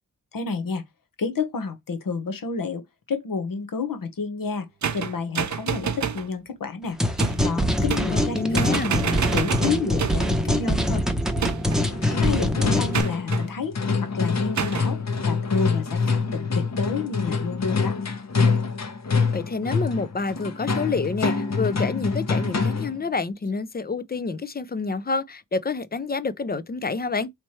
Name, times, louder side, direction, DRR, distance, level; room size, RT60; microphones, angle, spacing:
voice 1, 0.3-0.8 1.2-4.7 4.9-7.0 7.4-11.0 12.2-13.7 14.0-15.0 15.3-18.0, left 5 dB, 80° left, 1.0 m, -29 dB
sound 1, 4.8-6.3 7.2-7.5 7.9-8.3 8.6-10.4 11.4-11.9 12.9-13.5 14.6-14.9, right 7 dB, 55° right, 0.6 m, -28 dB
sound 2, 7.0-13.0, equal, ahead, 0.8 m, -24 dB
voice 2, 8.1-8.9 19.3-27.3, left 4 dB, 30° left, 0.4 m, -28 dB
sound 3, 11.8-23.0, left 4 dB, 50° left, 0.9 m, -25 dB
4.2 x 3.3 x 3.1 m
wide cardioid pair, 125°, 33 cm